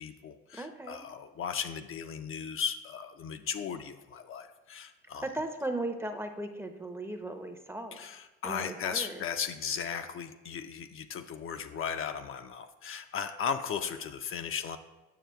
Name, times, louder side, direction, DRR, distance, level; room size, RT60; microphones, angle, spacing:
voice 1, 0.0-5.3 7.9-14.8, left 7 dB, 45° left, 7 dB, 0.4 m, -36 dB
voice 2, 0.5-1.0 5.2-8.0 8.4-9.2, right 1 dB, 10° right, 6 dB, 0.6 m, -37 dB
7.5 x 6.3 x 2.3 m, 1.1 s
supercardioid pair, 65°, 30 cm